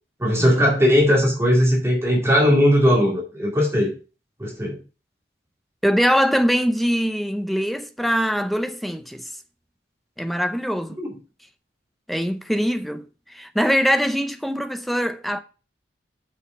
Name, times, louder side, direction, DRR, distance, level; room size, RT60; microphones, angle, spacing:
voice 1, 0.2-3.9 4.4-4.8, equal, 15° right, 2.3 m, -18 dB
voice 2, 5.8-9.3 10.2-11.0 12.1-15.4, equal, ahead, 0.6 m, -23 dB
6.5 x 5.8 x 5.6 m
head